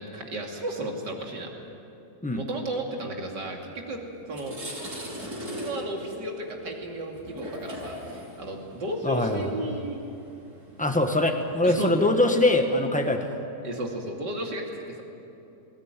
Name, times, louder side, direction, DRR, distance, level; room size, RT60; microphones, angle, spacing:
voice 1, 0.0-1.5 2.3-4.0 4.3-4.6 5.5-10.0 11.6-12.1 13.6-15.0, right 1 dB, 85° right, 0 dB, 3.3 m, -33 dB
sound 1, 3.7-3.8 4.2-11.5, equal, 65° right, 6.2 m, -39 dB
voice 2, 9.0-9.4 10.8-13.3, left 1 dB, 5° left, 5 dB, 1.3 m, -23 dB
20.5 x 19.0 x 9.2 m, 2.9 s
omnidirectional pair, 1.8 m